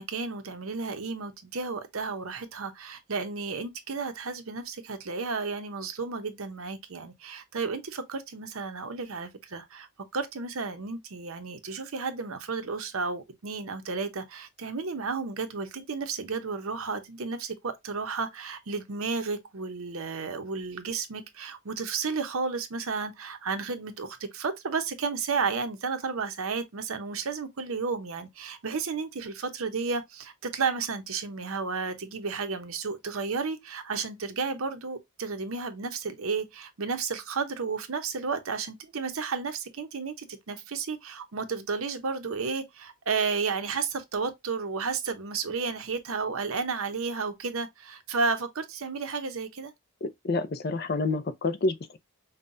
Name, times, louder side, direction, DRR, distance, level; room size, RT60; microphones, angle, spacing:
voice 1, 0.0-9.9 10.1-49.7, right 4 dB, 70° right, 0.7 m, -32 dB
voice 2, 50.0-52.0, left 3 dB, 45° left, 0.5 m, -28 dB
5.4 x 2.2 x 2.5 m
head